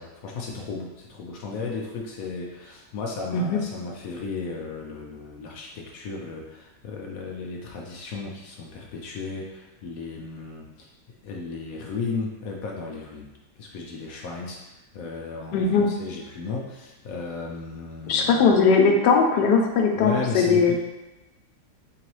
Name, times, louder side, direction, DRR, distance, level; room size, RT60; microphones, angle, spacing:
voice 1, 0.0-10.9 11.2-13.3 13.6-18.5 20.0-20.7, left 4 dB, 70° left, -1 dB, 0.9 m, -35 dB
voice 2, 15.5-15.9 18.1-20.7, left 5 dB, 85° left, 2 dB, 1.2 m, -19 dB
3.8 x 3.1 x 3.0 m, 1.1 s
omnidirectional pair, 1.8 m